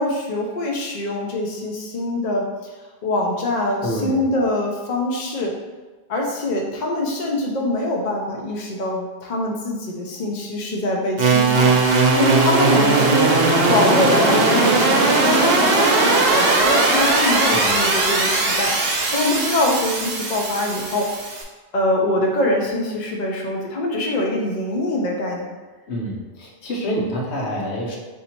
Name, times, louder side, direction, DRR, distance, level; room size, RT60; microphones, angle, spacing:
voice 1, 0.0-2.5 3.0-5.6 6.1-11.8 12.1-13.3 13.6-18.7 19.1-21.1 21.7-25.5, left 1 dB, 45° left, -1 dB, 0.7 m, -23 dB
voice 2, 3.8-4.2 17.5-17.7 25.9-28.0, equal, 75° left, -1 dB, 1.0 m, -27 dB
sound 1, 11.2-21.4, right 3 dB, 60° right, 0.9 m, -18 dB
3.9 x 2.7 x 4.3 m, 1.3 s
omnidirectional pair, 1.1 m